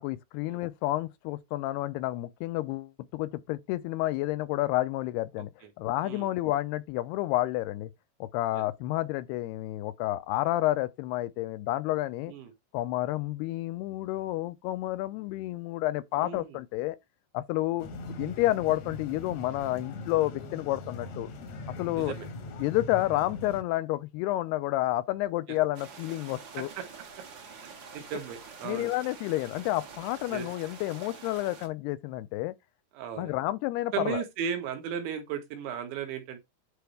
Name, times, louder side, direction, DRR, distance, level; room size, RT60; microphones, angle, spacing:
voice 1, 0.0-5.5 5.8-7.9 8.2-12.3 12.7-17.0 17.3-17.9 18.2-21.3 21.8-22.1 22.6-26.7 28.6-32.5 33.2-34.2, left 16 dB, 80° left, 2.4 m, -30 dB
sound 1, 17.8-23.6, left 2 dB, 65° left, 1.8 m, -41 dB
voice 2, 21.9-22.3 26.6-26.9 27.6-28.9 30.3-30.5 33.0-33.3 33.9-36.4, right 8 dB, 85° right, 4.1 m, -36 dB
sound 2, 25.7-31.7, right 5 dB, 65° right, 1.1 m, -47 dB
10.5 x 4.1 x 3.4 m
omnidirectional pair, 5.1 m